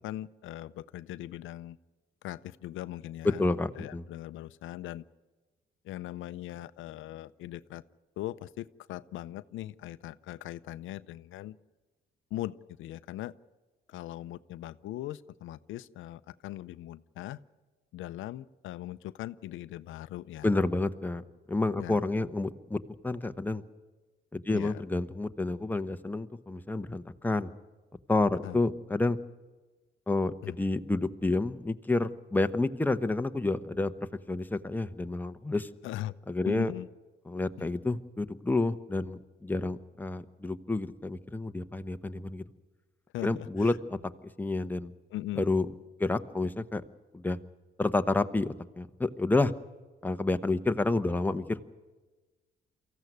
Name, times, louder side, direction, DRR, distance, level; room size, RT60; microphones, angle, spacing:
voice 1, 0.0-1.8 2.2-3.4 3.8-5.0 5.8-7.8 8.2-11.6 12.3-13.3 13.9-17.4 17.9-20.5 21.8-22.0 24.5-24.8 28.4-28.6 30.4-30.6 35.8-36.1 36.4-36.9 37.6-37.7 43.1-43.8 45.1-45.5, left 14 dB, 85° left, 15 dB, 0.6 m, -40 dB
voice 2, 3.4-4.0 20.4-21.2 21.5-23.6 24.3-27.5 28.1-29.2 30.1-33.9 34.3-35.7 36.3-36.7 37.3-42.4 43.2-44.0 44.4-44.9 45.4-45.7 46.0-46.8 47.1-47.4 47.8-49.5 50.0-51.7, left 2 dB, 10° left, 8 dB, 1.0 m, -29 dB
23.5 x 15.0 x 9.3 m, 1.2 s
cardioid pair, 90°, 20 cm